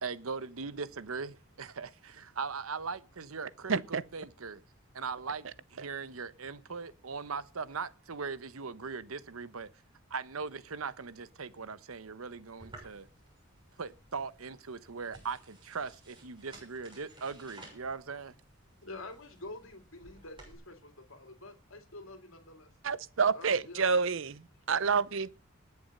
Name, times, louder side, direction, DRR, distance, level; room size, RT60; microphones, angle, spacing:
voice 1, 0.0-4.6 4.9-9.7 10.1-13.1 13.8-18.4, right 5 dB, 85° right, 0.9 m, -40 dB
voice 2, 3.7-4.0 22.8-24.4 24.7-25.3, right 5 dB, 65° right, 0.7 m, -28 dB
sound 1, 12.6-20.5, right 2 dB, 25° right, 6.5 m, -56 dB
voice 3, 18.8-22.7 23.3-24.2 24.5-24.6, left 2 dB, 75° left, 2.4 m, -47 dB
19.5 x 7.0 x 5.4 m
head